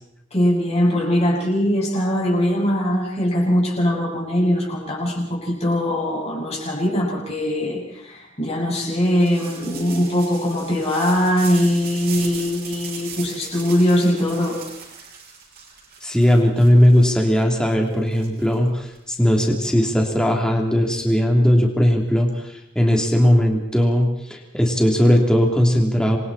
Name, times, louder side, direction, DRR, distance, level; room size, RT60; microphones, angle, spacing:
voice 1, 0.3-14.6, equal, 30° left, -2 dB, 7.0 m, -21 dB
sound 1, 9.1-19.0, right 6 dB, 50° right, 6.7 m, -38 dB
voice 2, 16.0-26.2, equal, 5° left, 0 dB, 3.3 m, -18 dB
29.0 x 24.0 x 4.3 m, 0.80 s
head